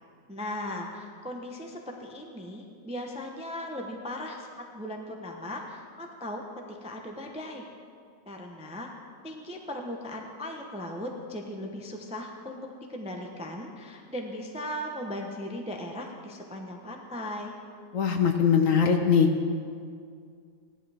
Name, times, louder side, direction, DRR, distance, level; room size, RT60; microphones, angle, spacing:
voice 1, 0.3-7.7 8.3-8.9 9.2-12.6 12.9-17.5, left 1 dB, 5° right, 2 dB, 0.5 m, -38 dB
voice 2, 17.9-19.3, left 6 dB, 60° left, 5 dB, 1.0 m, -21 dB
16.0 x 11.5 x 3.5 m, 2.2 s
omnidirectional pair, 1.8 m